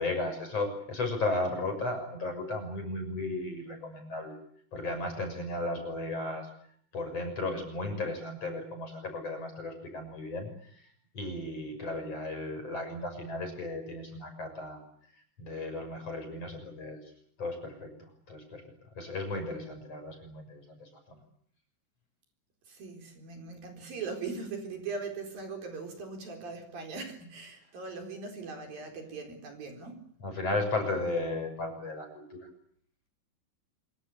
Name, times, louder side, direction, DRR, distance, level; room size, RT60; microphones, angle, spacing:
voice 1, 0.0-4.3 4.7-6.5 6.9-10.9 11.1-14.8 15.4-17.1 17.4-18.6 19.0-21.2 30.2-32.5, left 2 dB, 35° left, 5 dB, 7.2 m, -35 dB
voice 2, 22.7-30.0, right 4 dB, 55° right, 4 dB, 5.7 m, -40 dB
26.5 x 23.0 x 8.6 m, 0.63 s
omnidirectional pair, 5.1 m